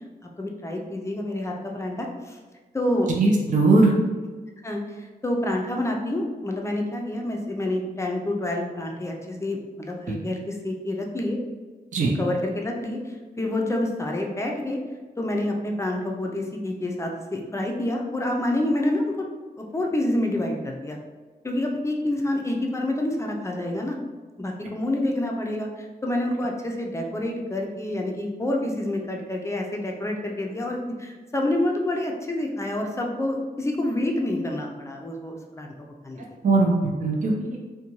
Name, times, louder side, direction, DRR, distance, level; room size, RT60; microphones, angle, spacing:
voice 1, 0.2-2.4 2.7-3.1 4.6-11.4 12.2-14.8 15.2-19.1 19.6-21.0 21.4-24.0 24.4-36.2, left 1 dB, 15° left, 1 dB, 0.4 m, -28 dB
voice 2, 3.2-3.9 10.1-10.2 11.9-12.1 36.4-37.7, right 3 dB, 50° right, -1 dB, 0.5 m, -20 dB
2.6 x 2.2 x 2.9 m, 1.4 s
wide cardioid pair, 95°, 17 cm